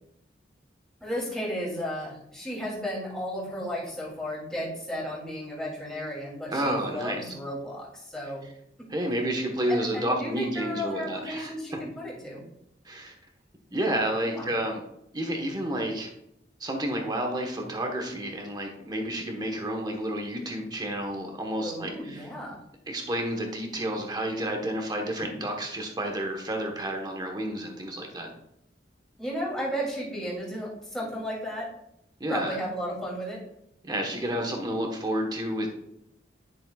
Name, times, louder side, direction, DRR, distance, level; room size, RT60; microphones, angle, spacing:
voice 1, 1.0-8.4 9.7-12.4 14.2-14.5 21.6-22.6 29.2-31.7 32.3-33.4, equal, 5° left, -6 dB, 2.9 m, -34 dB
voice 2, 6.5-7.2 8.9-11.5 12.8-13.1 13.7-14.8 15.1-16.1 16.6-22.3 22.9-28.3 32.2-32.6 33.8-35.7, right 1 dB, 25° right, 2 dB, 1.2 m, -30 dB
11.0 x 6.5 x 2.4 m, 0.80 s
head